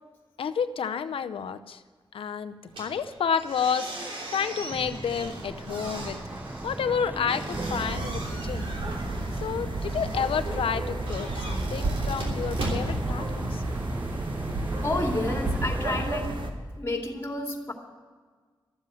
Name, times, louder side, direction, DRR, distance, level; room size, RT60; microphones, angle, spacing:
voice 1, 0.4-1.8 2.1-6.2 6.6-8.7 9.4-13.6, left 7 dB, 85° left, 12 dB, 0.7 m, -30 dB
sound 1, 2.7-13.8, right 1 dB, 85° right, 3.2 m, -39 dB
sound 2, 4.7-16.0, right 2 dB, 20° right, 0.6 m, -37 dB
sound 3, 7.5-16.5, right 2 dB, 65° right, 1.9 m, -32 dB
voice 2, 14.8-16.4 16.8-17.7, left 2 dB, 25° left, 2 dB, 2.6 m, -30 dB
13.0 x 7.6 x 8.9 m, 1.5 s
cardioid pair, 60°, 9 cm